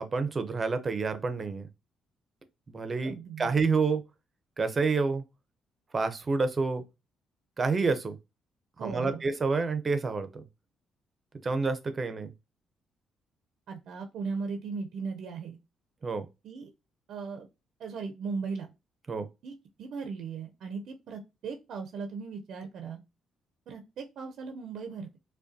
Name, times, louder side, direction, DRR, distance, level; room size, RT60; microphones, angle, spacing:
voice 1, 0.0-1.7 2.7-4.0 4.6-5.2 5.9-6.9 7.6-8.2 8.8-10.4 11.4-12.3 16.0-16.3 19.1-19.3, right 4 dB, 35° right, 0.6 m, -28 dB
voice 2, 3.0-3.5 8.8-9.2 13.7-15.6 16.4-16.7 17.1-17.5 17.8-18.7 19.4-19.5 19.8-23.0 23.7-25.2, right 5 dB, 70° right, 0.6 m, -37 dB
4.9 x 2.2 x 2.6 m
cardioid pair, 90°, 0 cm